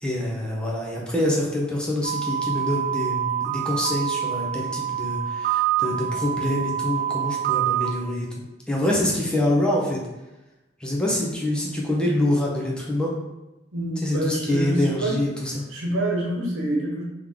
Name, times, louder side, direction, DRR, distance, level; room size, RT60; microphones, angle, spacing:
voice 1, 0.0-10.0 10.8-13.1 14.0-15.7, left 1 dB, 5° left, -4 dB, 0.7 m, -25 dB
sound 1, 2.0-7.9, right 10 dB, 45° right, 0.4 m, -26 dB
voice 2, 13.7-15.2 15.7-17.0, right 1 dB, 85° right, -2 dB, 1.1 m, -26 dB
3.7 x 3.1 x 3.6 m, 1.0 s
head